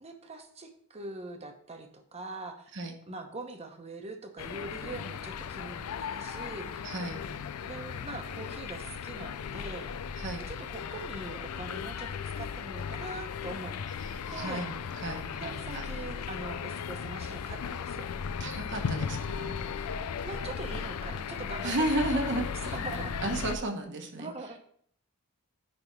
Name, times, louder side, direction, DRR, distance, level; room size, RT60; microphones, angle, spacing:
voice 1, 0.0-2.7 3.1-6.8 7.6-9.9 10.5-13.8 14.3-14.6 15.4-18.1 20.2-23.2 24.2-24.6, right 2 dB, 30° right, 5 dB, 0.9 m, -42 dB
sound 1, 4.4-23.6, left 6 dB, 85° left, 0.4 m, -36 dB
voice 2, 6.8-7.2 10.2-10.5 14.0-15.9 18.4-19.6 21.6-22.8 23.2-24.3, right 2 dB, 55° right, 4 dB, 1.1 m, -33 dB
9.8 x 3.5 x 4.5 m, 0.62 s
head